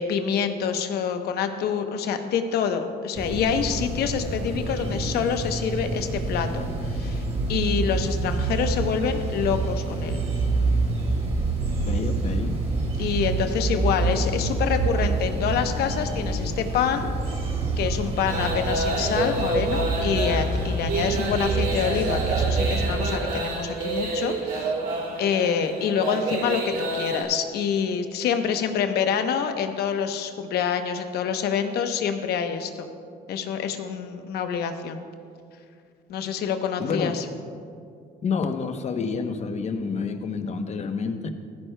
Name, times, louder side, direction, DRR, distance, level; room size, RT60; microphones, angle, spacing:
voice 1, 0.0-7.2 7.5-10.2 13.0-17.4 17.8-24.7 25.2-32.7 33.3-35.0 36.1-37.2, left 7 dB, 70° left, 7 dB, 0.9 m, -26 dB
sound 1, 3.1-23.0, right 3 dB, 40° right, 2.2 m, -27 dB
voice 2, 11.9-12.6 36.8-37.2 38.2-41.3, left 5 dB, 40° left, 7 dB, 0.9 m, -28 dB
sound 2, 18.3-27.2, right 2 dB, 60° right, 3.0 m, -29 dB
15.0 x 14.5 x 2.2 m, 2.2 s
cardioid pair, 110°, 17 cm